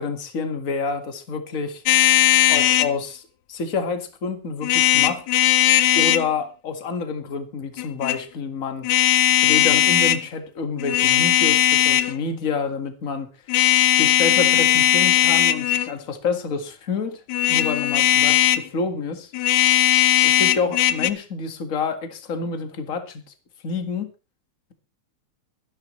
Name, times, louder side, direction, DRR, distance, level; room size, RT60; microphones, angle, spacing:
voice 1, 0.0-1.8 2.5-3.2 3.5-5.2 6.0-8.9 9.4-13.3 13.9-17.2 17.5-19.3 20.2-23.2 23.6-24.1, left 5 dB, 30° left, 1.8 m, -28 dB
sound 1, 1.9-2.9 4.6-6.3 7.8-8.2 8.8-10.2 10.8-12.2 13.5-15.9 17.3-18.7 19.3-21.1, left 13 dB, 75° left, 2.0 m, -18 dB
23.0 x 10.5 x 3.2 m
omnidirectional pair, 3.4 m